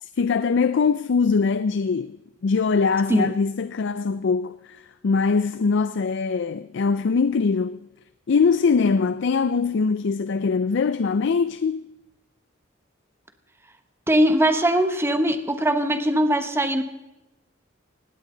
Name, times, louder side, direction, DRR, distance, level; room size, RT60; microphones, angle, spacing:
voice 1, 0.0-2.2 2.4-7.8 8.3-11.9, left 5 dB, 65° left, 0.4 m, -22 dB
voice 2, 14.1-16.8, right 1 dB, 15° right, 1.2 m, -21 dB
18.5 x 16.5 x 3.9 m
head